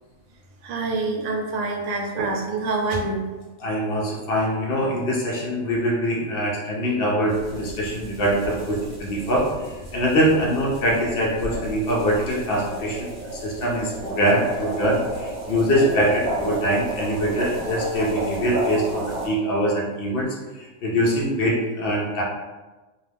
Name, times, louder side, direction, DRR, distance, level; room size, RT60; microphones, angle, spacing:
voice 1, 0.6-3.2, right 3 dB, 75° right, 1 dB, 1.0 m, -26 dB
voice 2, 3.6-22.2, equal, 65° left, -3 dB, 0.5 m, -23 dB
sound 1, 7.3-19.3, right 1 dB, 40° right, 0.7 m, -32 dB
2.4 x 2.3 x 3.3 m, 1.2 s
omnidirectional pair, 1.5 m